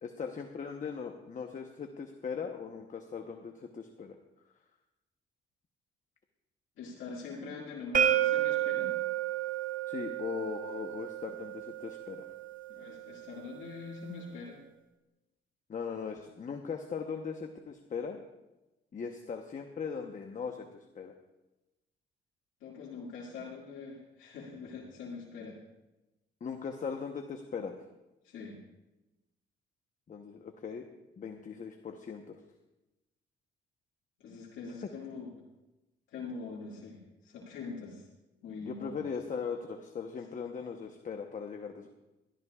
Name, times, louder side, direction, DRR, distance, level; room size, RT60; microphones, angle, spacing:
voice 1, 0.0-4.2 9.9-12.3 15.7-18.2 18.9-20.7 20.9-21.1 26.4-27.8 30.1-30.8 31.2-32.4 38.6-41.9, left 6 dB, 40° left, 4 dB, 1.0 m, -39 dB
voice 2, 6.8-9.0 12.7-14.6 22.6-25.6 28.2-28.6 34.2-35.3 36.1-38.1 38.4-39.0, left 4 dB, 80° left, -5 dB, 2.2 m, -43 dB
sound 1, 7.9-13.7, right 11 dB, 45° right, 0.8 m, -32 dB
20.5 x 13.0 x 2.4 m, 1.0 s
cardioid pair, 90°, 20 cm